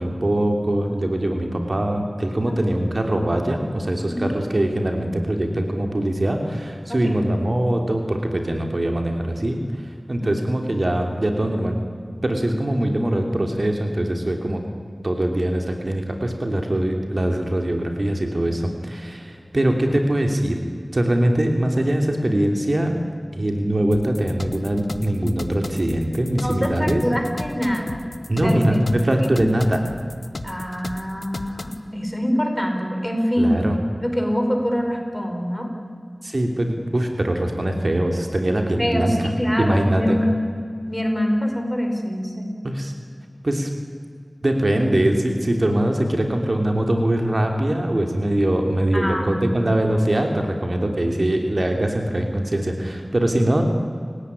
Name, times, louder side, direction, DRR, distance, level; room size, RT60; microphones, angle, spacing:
voice 1, 0.0-11.8 12.2-14.6 15.0-20.6 20.9-23.0 23.3-27.0 28.3-29.8 33.4-33.8 36.2-39.3 39.6-40.2 42.6-42.9 43.4-43.7 44.4-53.6, right 1 dB, 55° right, 3 dB, 3.1 m, -22 dB
voice 2, 2.5-2.9 4.0-4.3 6.9-7.2 10.2-10.3 26.4-28.0 28.4-28.8 29.2-29.4 30.4-33.6 34.0-35.7 38.8-40.3 40.9-42.6 48.9-49.8, equal, 10° left, 3 dB, 5.3 m, -25 dB
sound 1, 23.9-31.8, left 2 dB, 80° left, 1.4 m, -35 dB
29.5 x 17.0 x 9.9 m, 2.1 s
wide cardioid pair, 45°, 0 cm